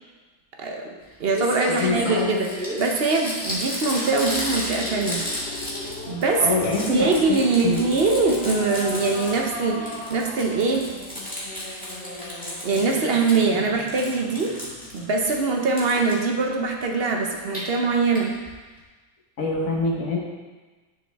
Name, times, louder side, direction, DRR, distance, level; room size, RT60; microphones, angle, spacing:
voice 1, 0.6-0.9 1.2-2.5 2.8-5.2 5.8-6.5 6.9-10.9 12.6-14.6 14.9-18.3, right 3 dB, 50° right, 2 dB, 0.7 m, -23 dB
Crumpling crinkling, 1.0-1.1 1.3-6.2 6.5-9.6 9.9-13.5 13.8-15.3 15.8-16.1 17.3-17.6 18.1-18.2 18.5-18.6 18.8-18.9, equal, 5° left, 1.9 m, -33 dB
voice 2, 1.7-2.4 6.4-7.8 19.4-20.2, left 3 dB, 55° left, -1 dB, 1.5 m, -25 dB
sound 1, 3.7-12.2, left 3 dB, 90° left, 1.6 m, -41 dB
sound 2, 7.4-16.8, equal, 70° left, 2.0 m, -40 dB
10.5 x 4.7 x 3.4 m, 1.3 s
omnidirectional pair, 1.8 m